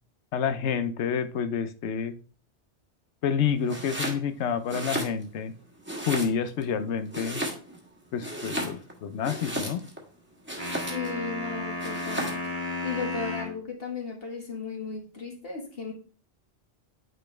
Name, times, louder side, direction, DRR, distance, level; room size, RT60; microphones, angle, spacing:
voice 1, 0.3-2.1 3.2-5.5 6.1-7.4 8.1-9.8, left 7 dB, 90° left, 11 dB, 1.0 m, -28 dB
Domestic sounds home sounds, 3.6-4.2 4.6-5.5 5.8-6.6 7.1-7.9 8.2-10.0 10.5-11.2 11.8-12.5, right 1 dB, 10° right, 1.4 m, -34 dB
sound 1, 10.6-13.6, left 2 dB, 45° right, 1.7 m, -33 dB
voice 2, 10.9-12.4 12.8-15.9, left 5 dB, 60° left, 0 dB, 1.8 m, -35 dB
8.9 x 4.1 x 3.3 m, 0.38 s
omnidirectional pair, 1.1 m